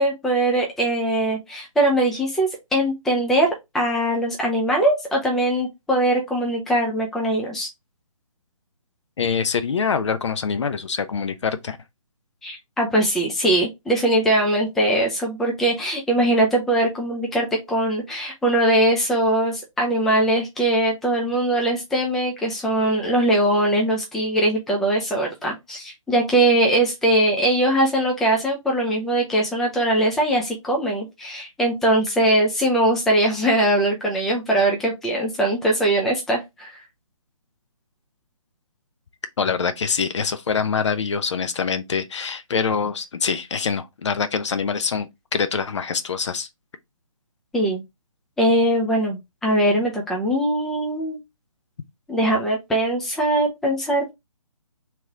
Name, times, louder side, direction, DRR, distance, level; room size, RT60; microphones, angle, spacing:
voice 1, 0.0-3.5 3.7-7.7 12.4-36.7 47.5-47.8 48.4-51.2 52.1-54.1, right 1 dB, ahead, 0.4 m, -21 dB
voice 2, 9.2-11.8 39.4-46.5, left 6 dB, 55° left, 0.6 m, -24 dB
3.1 x 3.0 x 3.5 m
figure-of-eight pair, 145°, 18 cm